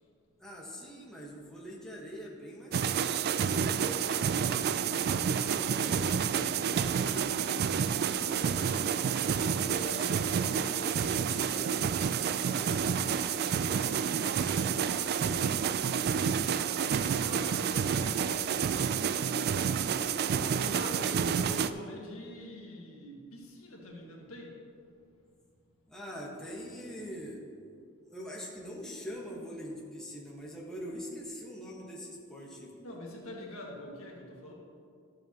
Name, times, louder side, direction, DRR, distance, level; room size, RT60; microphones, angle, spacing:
voice 1, 0.4-4.8 8.7-9.2 9.6-13.9 20.1-21.4 25.9-27.4 28.0-32.8, equal, 5° left, -4 dB, 1.2 m, -44 dB
sound 1, 2.7-21.7, right 7 dB, 50° right, 0.3 m, -29 dB
voice 2, 5.8-7.8 8.1-8.5 15.5-19.0 20.6-24.6 32.8-34.5, left 1 dB, 85° left, -2 dB, 1.7 m, -45 dB
12.5 x 7.5 x 2.9 m, 2.4 s
head